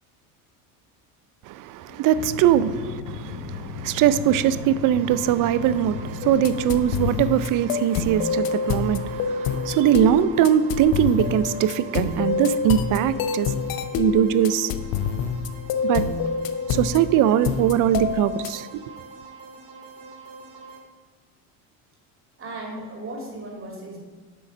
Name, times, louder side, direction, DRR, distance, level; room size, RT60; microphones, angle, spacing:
voice 1, 1.5-2.7 3.3-13.5 13.9-14.7 15.8-16.0 16.7-18.8, right 11 dB, 50° right, 0.5 m, -21 dB
sound 1, 2.1-7.2, left 4 dB, 80° left, 1.0 m, -35 dB
sound 2, 5.0-20.8, right 3 dB, 70° right, 2.5 m, -44 dB
sound 3, 6.2-18.5, left 6 dB, 55° left, 0.7 m, -27 dB
voice 2, 22.4-24.0, right 1 dB, 30° right, 2.6 m, -36 dB
8.6 x 3.8 x 6.1 m
supercardioid pair, 95°, 43 cm